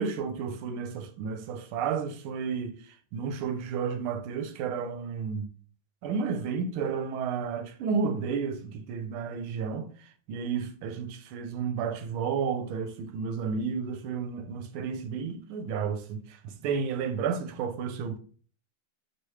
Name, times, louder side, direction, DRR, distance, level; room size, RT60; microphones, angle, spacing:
voice 1, 0.0-5.5 6.0-18.2, right 6 dB, 85° right, 1.5 m, -32 dB
4.9 x 3.0 x 3.1 m
omnidirectional pair, 2.3 m